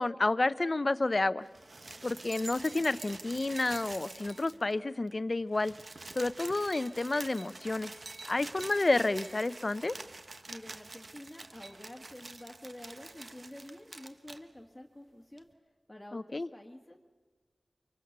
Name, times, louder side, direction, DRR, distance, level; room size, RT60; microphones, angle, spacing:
voice 1, 0.0-1.5 2.0-5.7 6.1-7.9 8.3-10.0 16.1-16.5, left 2 dB, 45° left, 16 dB, 0.7 m, -30 dB
sound 1, 1.5-4.8 5.1-5.2 5.4-14.4 15.4-15.5, right 2 dB, 55° right, 1.2 m, -46 dB
voice 2, 10.5-15.5 15.9-17.0, left 1 dB, 15° left, 0 dB, 1.9 m, -49 dB
26.0 x 23.0 x 6.8 m, 1.3 s
wide cardioid pair, 60°, 0 cm